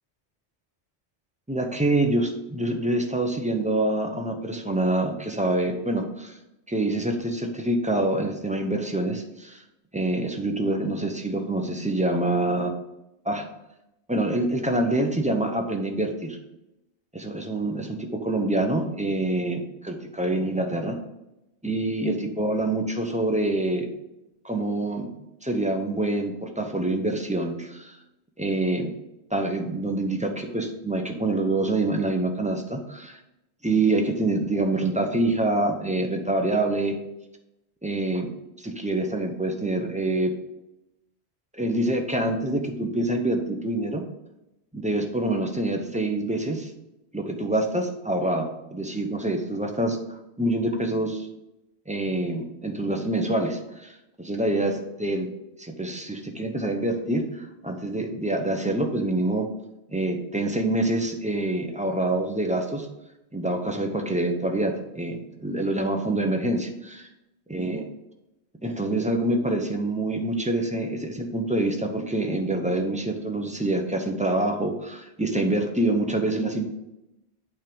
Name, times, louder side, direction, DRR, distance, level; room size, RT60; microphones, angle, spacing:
voice 1, 1.5-6.4 6.7-9.6 9.9-12.7 13.2-13.5 14.1-16.4 17.1-21.0 21.6-23.9 24.4-25.1 25.4-28.0 28.4-28.9 29.3-33.2 33.6-37.0 37.8-38.3 38.6-40.3 41.5-44.0 44.7-46.7 47.1-51.3 51.9-55.3 55.6-59.5 59.9-62.9 63.3-67.1 67.5-67.8 68.6-76.7, right 2 dB, 10° right, 3 dB, 0.7 m, -26 dB
8.6 x 3.6 x 5.3 m, 0.91 s
omnidirectional pair, 1.1 m